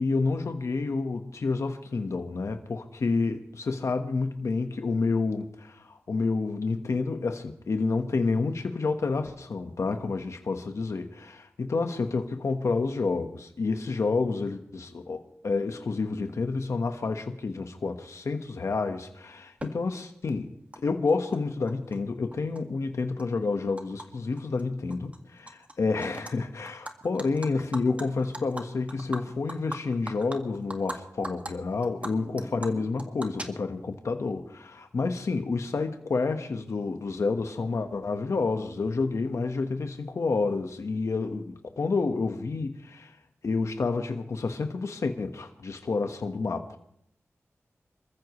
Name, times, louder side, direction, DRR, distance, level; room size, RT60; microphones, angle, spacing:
voice 1, 0.0-20.5 20.8-43.2 43.4-46.8, left 4 dB, 75° left, 5 dB, 1.4 m, -29 dB
Animal, 19.6-19.7 20.7-20.8 21.1-22.0 22.3-24.1 24.4-24.6 24.9-25.7 26.0-26.3 26.7-31.0 31.2-31.5 31.8-33.9, right 1 dB, 25° right, 2.0 m, -40 dB
27.0 x 15.0 x 3.2 m, 0.71 s
wide cardioid pair, 80°, 5 cm